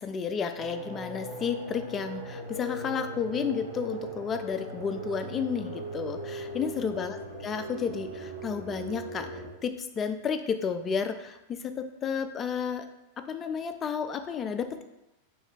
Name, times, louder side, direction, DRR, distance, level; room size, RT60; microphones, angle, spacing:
voice 1, 0.0-7.2 7.4-12.9 13.2-14.9, left 6 dB, 25° left, 8 dB, 0.4 m, -32 dB
sound 1, 0.5-9.5, right 2 dB, 70° right, 1.1 m, -39 dB
3.2 x 3.0 x 4.5 m, 0.94 s
figure-of-eight pair, 90°, 0 cm